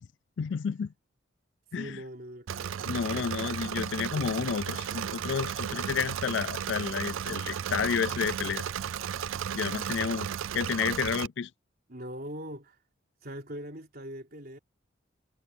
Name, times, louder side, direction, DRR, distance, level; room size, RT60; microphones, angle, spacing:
voice 1, 0.4-0.9 1.7-2.0 2.9-8.6 9.5-10.3 10.5-11.5, left 7 dB, 65° left, 0.4 m, -31 dB
voice 2, 1.7-4.2 4.9-5.3 11.9-12.8 13.2-14.6, equal, 50° right, 3.6 m, -43 dB
Engine / Mechanisms, 2.5-11.3, right 8 dB, 80° right, 0.4 m, -34 dB
head